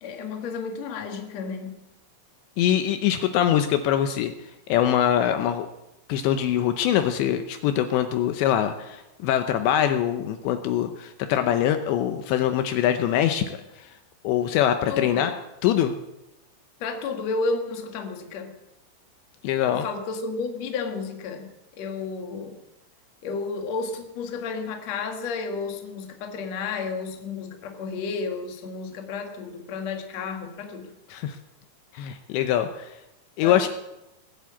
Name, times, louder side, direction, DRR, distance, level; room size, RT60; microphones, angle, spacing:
voice 1, 0.0-1.8 14.9-15.3 16.8-18.5 19.7-21.5 21.8-22.6 23.2-30.9 33.4-33.7, left 4 dB, 50° left, 4 dB, 2.2 m, -32 dB
voice 2, 2.6-4.3 4.7-5.7 6.1-13.9 14.2-15.3 15.6-16.0 19.4-19.9 31.1-31.4 31.9-33.0 33.4-33.7, left 10 dB, 80° left, 8 dB, 2.9 m, -23 dB
20.0 x 8.1 x 8.6 m, 0.94 s
omnidirectional pair, 5.4 m